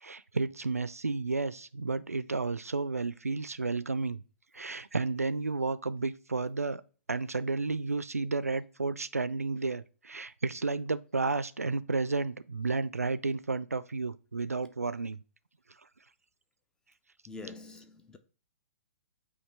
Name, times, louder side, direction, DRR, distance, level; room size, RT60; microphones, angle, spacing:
voice 1, 0.0-4.2 4.5-6.8 7.1-15.2, right 3 dB, 80° right, 0.5 m, -32 dB
voice 2, 17.3-18.2, left 3 dB, 10° left, 0.7 m, -45 dB
8.2 x 2.9 x 4.6 m
figure-of-eight pair, 120°, 8 cm